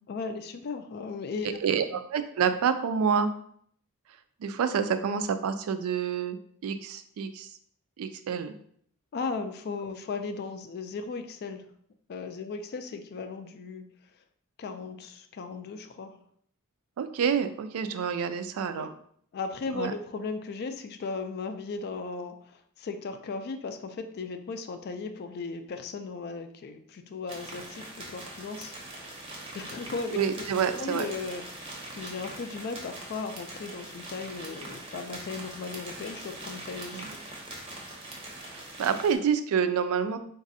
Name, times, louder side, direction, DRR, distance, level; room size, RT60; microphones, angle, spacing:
voice 1, 0.1-1.6 1.9-2.0 9.1-11.7 12.1-13.9 14.6-16.2 18.7-18.9 19.3-28.7 29.1-29.3 29.5-30.5 30.8-37.2, left 4 dB, 45° left, 8 dB, 0.3 m, -36 dB
voice 2, 1.4-3.3 4.4-6.4 6.6-7.5 8.0-8.5 17.0-18.9 19.7-19.9 30.1-31.1 36.9-37.1 38.5-40.2, right 7 dB, 75° right, 10 dB, 0.3 m, -28 dB
sound 1, 27.3-39.2, right 1 dB, 25° right, 0.6 m, -42 dB
4.0 x 2.6 x 2.6 m, 0.64 s
head